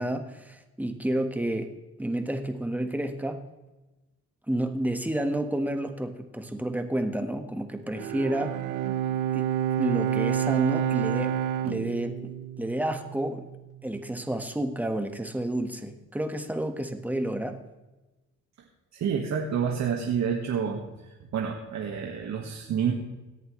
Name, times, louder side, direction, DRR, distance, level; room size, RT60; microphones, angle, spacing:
voice 1, 0.0-1.7 2.0-3.4 4.5-8.6 9.3-9.5 9.8-11.3 11.6-12.3 12.6-13.4 13.8-17.6, right 1 dB, 5° right, 7 dB, 1.5 m, -30 dB
Bowed string instrument, 7.9-13.4, right 10 dB, 85° right, 0.7 m, -29 dB
voice 2, 18.9-20.9 21.3-22.9, right 7 dB, 65° right, 1 dB, 1.7 m, -28 dB
17.5 x 10.5 x 3.2 m, 1.1 s
cardioid pair, 90°, 30 cm